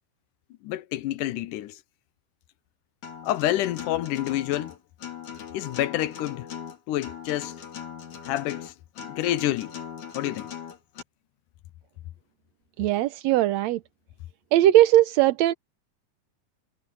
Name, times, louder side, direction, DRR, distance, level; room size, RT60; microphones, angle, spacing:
voice 1, 0.6-1.8 3.2-4.8 5.5-6.5 6.9-7.6 8.2-8.7 9.0-9.7 10.1-10.5, left 14 dB, 85° left, 2.3 m, -28 dB
Acoustic guitar, 3.0-11.0, left 8 dB, 65° left, 3.8 m, -39 dB
voice 2, 12.8-13.8 14.5-15.5, right 14 dB, 75° right, 1.7 m, -19 dB
omnidirectional pair, 3.7 m